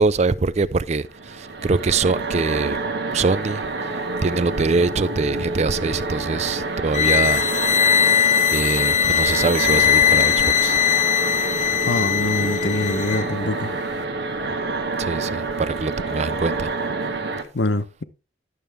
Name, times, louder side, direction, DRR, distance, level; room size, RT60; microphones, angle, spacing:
voice 1, 0.0-2.8 3.1-7.5 8.2-10.8 15.0-16.7, right 4 dB, 40° right, 0.4 m, -23 dB
sound 1, 1.1-17.4, right 3 dB, 70° right, 1.4 m, -28 dB
sound 2, 6.9-13.3, left 9 dB, 40° left, 0.6 m, -20 dB
voice 2, 11.8-13.7 17.5-18.0, left 2 dB, 70° left, 0.9 m, -24 dB
11.0 x 6.9 x 3.4 m
head